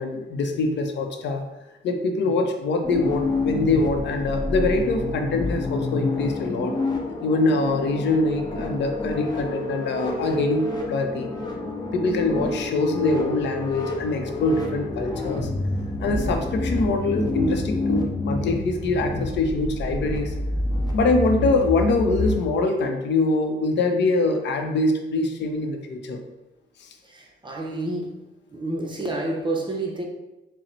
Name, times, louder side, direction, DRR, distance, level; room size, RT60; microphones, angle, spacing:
voice 1, 0.0-1.4 1.8-6.8 7.2-11.3 11.9-15.5 16.0-20.3 20.9-26.2 26.8-26.9, left 2 dB, 65° left, 4 dB, 0.6 m, -24 dB
sound 1, 2.8-22.3, left 2 dB, 20° left, 0.8 m, -28 dB
voice 2, 27.0-28.2 28.5-30.1, right 2 dB, 25° right, 0 dB, 0.6 m, -30 dB
3.9 x 2.1 x 4.2 m, 1.0 s
cardioid pair, 90°, 20 cm